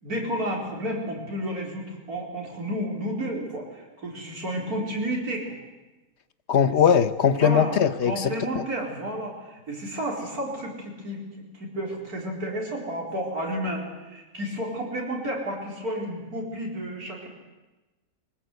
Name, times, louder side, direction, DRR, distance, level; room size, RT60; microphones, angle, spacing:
voice 1, 0.0-5.5 6.5-6.6 7.3-7.7 8.0-17.3, equal, 80° right, -1 dB, 4.9 m, -31 dB
voice 2, 6.5-8.6, left 8 dB, 50° left, 13 dB, 1.1 m, -21 dB
22.0 x 19.5 x 8.1 m, 1.1 s
omnidirectional pair, 1.6 m